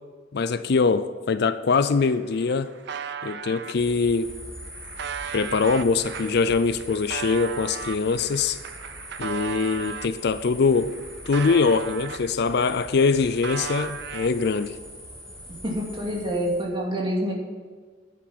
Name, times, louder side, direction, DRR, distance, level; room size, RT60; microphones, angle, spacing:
voice 1, 0.3-2.7 3.2-4.3 5.3-8.6 9.2-10.9 11.3-14.8, left 4 dB, 55° left, 12 dB, 0.4 m, -23 dB
sound 1, 2.2-3.7 4.4-10.2 10.6-12.6 12.8-14.7, right 7 dB, 60° right, 0.6 m, -36 dB
sound 2, 3.7-16.6, equal, 5° left, 3.9 m, -42 dB
voice 2, 15.6-17.3, equal, 25° right, -3 dB, 2.6 m, -27 dB
10.5 x 7.6 x 7.2 m, 1.5 s
head